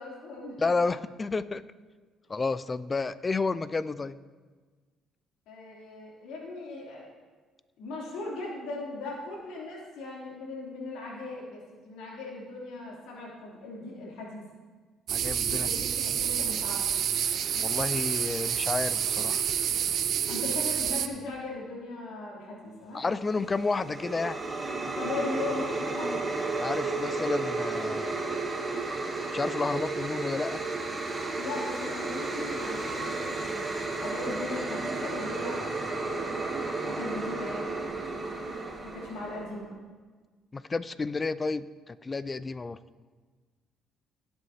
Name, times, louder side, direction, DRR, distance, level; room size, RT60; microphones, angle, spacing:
voice 1, 0.0-0.6 5.5-7.1 7.8-14.4 15.5-16.8 20.3-23.0 25.0-26.3 31.4-33.7 34.0-35.7 36.0-36.5 36.8-39.7, left 2 dB, 85° left, -4 dB, 3.0 m, -38 dB
voice 2, 0.6-1.6 2.3-4.2 15.1-15.7 17.6-19.4 22.9-24.4 26.6-28.4 29.3-30.6 40.5-42.8, left 3 dB, 30° left, 16 dB, 0.4 m, -31 dB
sound 1, 15.1-21.1, right 9 dB, 65° right, 0.6 m, -28 dB
sound 2, 23.2-39.6, right 3 dB, 25° right, 1.5 m, -33 dB
18.0 x 7.9 x 2.8 m, 1.4 s
cardioid pair, 85°, 0 cm